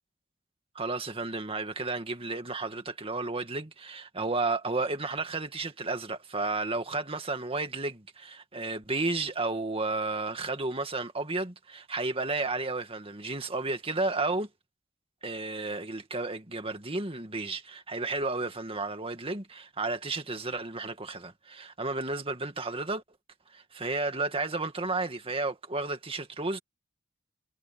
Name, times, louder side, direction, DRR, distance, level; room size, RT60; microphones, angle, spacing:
voice 1, 0.8-14.5 15.2-23.0 23.5-26.6, right 3 dB, 25° right, 2.0 m, -32 dB
head